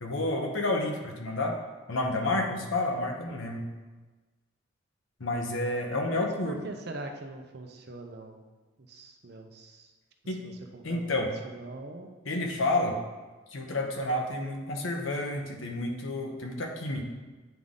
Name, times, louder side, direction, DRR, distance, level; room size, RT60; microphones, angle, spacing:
voice 1, 0.0-1.6 1.9-3.7 5.2-6.6 10.3-10.4 10.8-11.3 12.2-13.0 13.5-17.0, left 2 dB, 85° left, 2 dB, 1.0 m, -30 dB
voice 2, 6.1-8.4 8.8-9.9 10.2-12.1, right 2 dB, 55° right, 4 dB, 0.7 m, -43 dB
9.2 x 3.8 x 3.7 m, 1.3 s
head